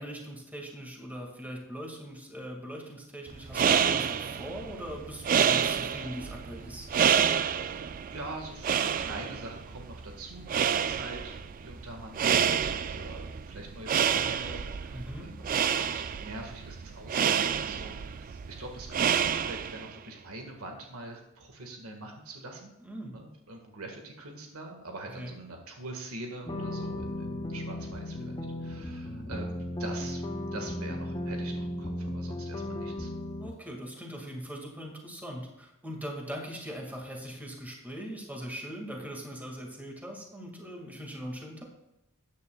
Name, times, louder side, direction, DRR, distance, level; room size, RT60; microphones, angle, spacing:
voice 1, 0.0-6.9 14.9-15.3 22.8-23.2 25.2-25.4 33.4-41.6, equal, 10° right, 0 dB, 1.9 m, -40 dB
sound 1, 3.3-20.0, right 8 dB, 40° right, 0.3 m, -29 dB
voice 2, 7.5-22.7 23.1-30.2 30.5-33.1, right 2 dB, 85° right, 2 dB, 1.7 m, -44 dB
sound 2, 26.5-33.5, left 1 dB, 20° left, 0.9 m, -35 dB
14.0 x 9.4 x 2.3 m, 0.91 s
head